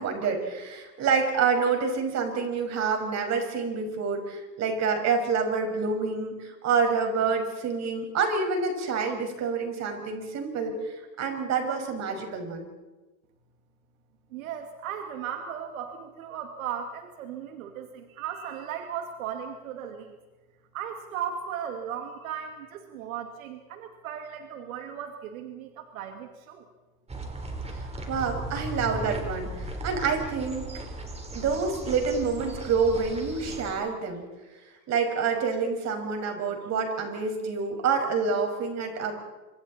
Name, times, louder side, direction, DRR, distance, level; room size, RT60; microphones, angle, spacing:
voice 1, 0.0-12.7 27.7-30.7 31.3-34.2 34.9-39.1, right 5 dB, 40° right, 4 dB, 5.9 m, -27 dB
voice 2, 14.3-20.2 20.7-26.7, right 8 dB, 80° right, 5 dB, 2.3 m, -36 dB
sound 1, 27.1-33.7, right 1 dB, 15° right, 4.3 m, -37 dB
28.0 x 26.0 x 4.3 m, 1.2 s
supercardioid pair, 105°, 41 cm